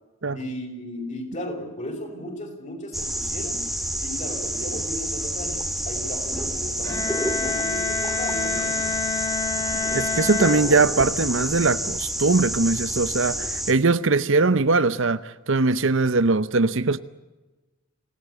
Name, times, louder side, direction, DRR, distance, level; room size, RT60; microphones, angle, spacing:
voice 1, 0.3-3.7 4.0-9.0 13.3-13.4, left 1 dB, 35° left, 6.1 m, -35 dB
sound 1, 2.9-13.7, right 1 dB, ahead, 2.0 m, -29 dB
Bowed string instrument, 6.8-11.3, left 6 dB, 15° left, 4.4 m, -28 dB
voice 2, 9.9-17.0, right 3 dB, 60° right, 0.8 m, -21 dB
27.5 x 17.5 x 8.3 m
head